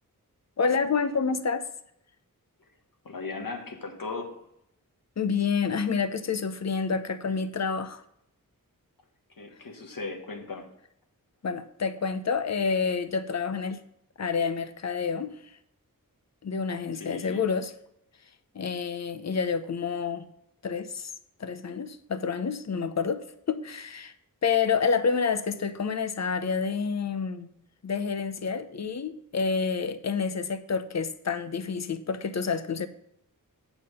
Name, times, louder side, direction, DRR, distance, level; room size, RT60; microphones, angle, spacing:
voice 1, 0.6-1.7 5.2-8.0 11.4-13.8 14.2-15.3 16.4-17.7 18.5-20.2 20.6-21.1 21.4-24.1 24.4-27.5 27.8-32.9, left 5 dB, 50° left, 0.7 m, -28 dB
voice 2, 3.0-4.4 9.4-10.7 17.0-17.4, left 3 dB, 70° left, 1.6 m, -37 dB
8.5 x 5.9 x 5.5 m
wide cardioid pair, 80°, 35 cm